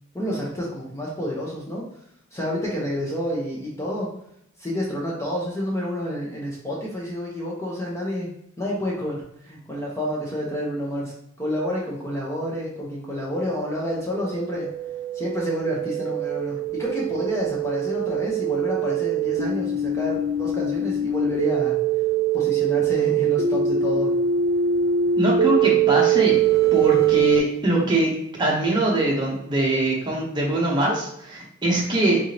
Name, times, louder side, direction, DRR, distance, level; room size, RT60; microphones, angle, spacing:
voice 1, 0.1-1.8 2.3-4.1 4.6-8.3 8.6-11.1 11.4-14.7 15.1-21.8 22.3-24.2, equal, 15° left, -4 dB, 0.8 m, -29 dB
sound 1, 14.1-27.4, right 7 dB, 45° right, 0.4 m, -23 dB
voice 2, 25.2-26.4 26.7-28.1 28.4-32.2, right 1 dB, 20° right, -3 dB, 0.8 m, -22 dB
3.8 x 3.4 x 2.9 m, 0.74 s
head